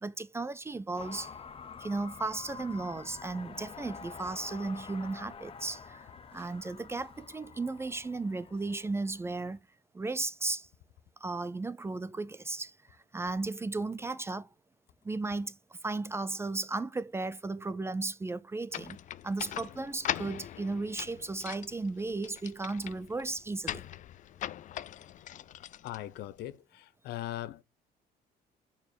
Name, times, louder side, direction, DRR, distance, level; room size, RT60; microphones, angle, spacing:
voice 1, 0.0-1.3 1.8-9.6 9.9-10.7 11.2-14.5 15.0-19.0 19.2-23.8, right 3 dB, 15° right, 0.4 m, -35 dB
sound 1, 0.9-9.6, left 6 dB, 35° left, 0.9 m, -48 dB
sound 2, 18.7-26.5, left 11 dB, 50° left, 0.4 m, -41 dB
voice 2, 25.8-27.6, left 14 dB, 75° left, 0.7 m, -40 dB
6.8 x 4.5 x 6.5 m
cardioid pair, 110°, 17 cm